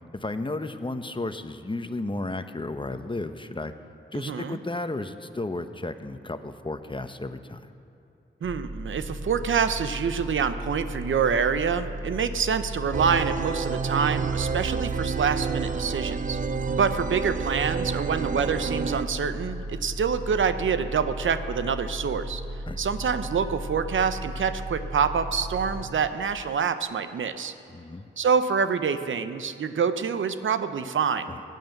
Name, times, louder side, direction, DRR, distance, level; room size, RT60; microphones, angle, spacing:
voice 1, 0.1-3.7 4.1-7.6 16.4-16.5 22.7-22.8 27.7-28.1 31.3-31.4, left 2 dB, 25° left, 9 dB, 0.9 m, -33 dB
voice 2, 4.1-4.6 8.4-16.4 16.7-22.4 22.8-27.5 28.2-31.3, right 6 dB, 80° right, 11 dB, 0.7 m, -26 dB
sound 1, 8.4-25.8, equal, 10° right, 4.4 m, -36 dB
sound 2, 12.9-19.0, right 6 dB, 40° right, 0.5 m, -30 dB
15.5 x 9.3 x 7.9 m, 2.7 s
cardioid pair, 45°, 20 cm